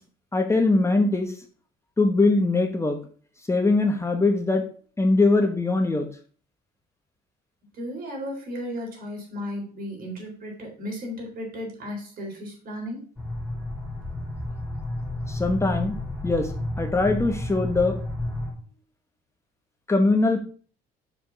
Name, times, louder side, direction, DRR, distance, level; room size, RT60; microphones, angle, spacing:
voice 1, 0.3-1.3 2.0-3.0 3.5-4.6 5.0-6.1 15.3-15.9 16.2-16.5 16.8-18.0 19.9-20.4, left 3 dB, 15° left, 5 dB, 1.1 m, -21 dB
voice 2, 7.7-13.0, equal, 60° right, 0 dB, 3.8 m, -35 dB
sound 1, 13.2-18.5, left 1 dB, 5° right, 3.8 m, -31 dB
5.9 x 5.1 x 5.7 m, 0.42 s
cardioid pair, 110°, 17 cm